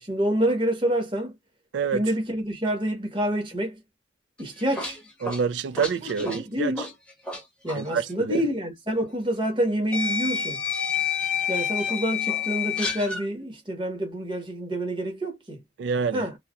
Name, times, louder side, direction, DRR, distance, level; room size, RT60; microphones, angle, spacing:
voice 1, 0.0-1.3 1.9-3.7 4.4-5.0 6.2-6.9 7.6-10.6 11.5-15.6 16.1-16.4, equal, 25° right, 1.2 m, -27 dB
voice 2, 1.7-2.0 5.2-6.7 7.7-8.4 15.8-16.3, right 6 dB, 75° right, 0.3 m, -27 dB
sound 1, 4.4-7.4 7.7-7.9 9.0-9.1 9.9-13.3, left 7 dB, 5° left, 0.9 m, -29 dB
3.4 x 2.8 x 2.3 m
head